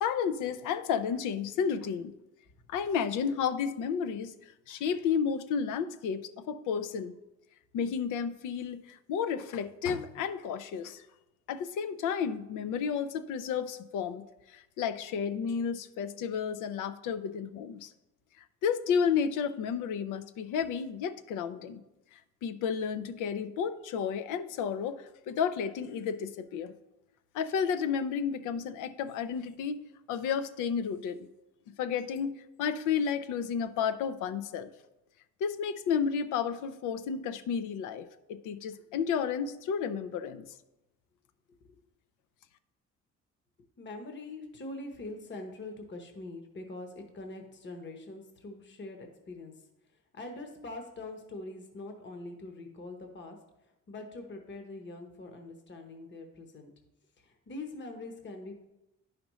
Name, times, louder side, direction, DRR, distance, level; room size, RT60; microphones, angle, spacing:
voice 1, 0.0-2.1 2.7-4.3 4.7-7.1 7.7-11.0 11.5-17.9 18.6-21.8 22.1-26.7 27.3-29.8 30.1-31.3 31.7-34.7 35.4-40.5, left 7 dB, 90° left, 12 dB, 0.6 m, -32 dB
voice 2, 43.8-49.5 50.1-53.4 53.9-56.7 57.2-58.6, left 2 dB, 40° left, 4 dB, 1.0 m, -43 dB
10.5 x 5.0 x 3.1 m, 0.94 s
cardioid pair, 90°, 30 cm